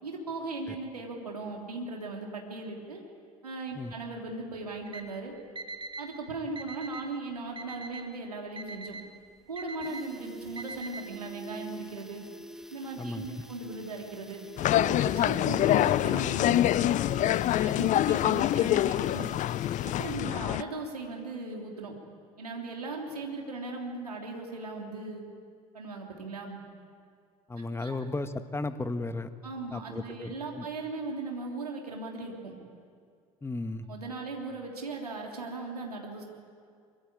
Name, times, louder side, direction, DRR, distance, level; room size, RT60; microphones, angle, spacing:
voice 1, 0.0-3.0 3.4-5.3 6.0-9.0 9.5-12.2 12.7-14.4 14.7-16.9 17.5-19.3 19.8-21.9 22.4-25.2 25.7-26.6 27.8-28.0 29.4-32.6 33.9-36.2, right 3 dB, 85° right, 0 dB, 3.3 m, -38 dB
Alarm, 4.9-5.0 5.6-6.0 6.6-7.0 7.6-8.0 8.6-9.0 9.6-10.0 10.6-11.0, right 3 dB, 25° right, 2.2 m, -41 dB
sound 1, 8.9-9.0 9.3-9.4 9.7-20.5 20.8-20.9, equal, ahead, 1.8 m, -45 dB
sound 2, 14.6-20.6, left 13 dB, 40° left, 0.6 m, -25 dB
voice 2, 27.5-29.3 29.7-30.7 33.4-33.9, left 2 dB, 15° left, 10 dB, 1.5 m, -35 dB
24.0 x 23.5 x 8.7 m, 2.3 s
figure-of-eight pair, 65°, 19 cm